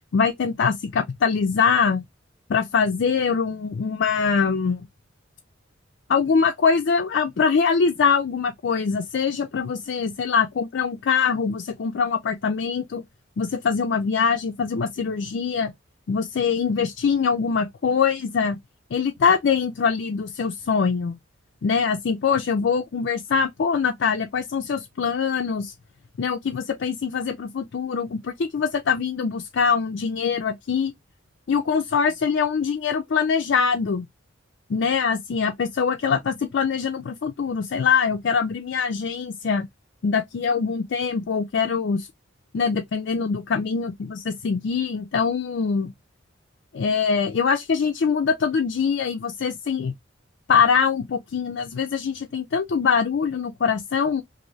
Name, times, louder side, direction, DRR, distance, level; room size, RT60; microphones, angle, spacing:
voice 1, 0.1-2.0 2.5-4.8 6.1-13.0 13.4-15.7 16.1-18.6 18.9-21.1 21.6-25.7 26.2-30.9 31.5-34.1 34.7-39.7 40.0-42.1 42.5-45.9 46.7-49.9 50.5-54.2, left 6 dB, 60° left, 0.4 m, -23 dB
2.6 x 2.6 x 3.0 m
head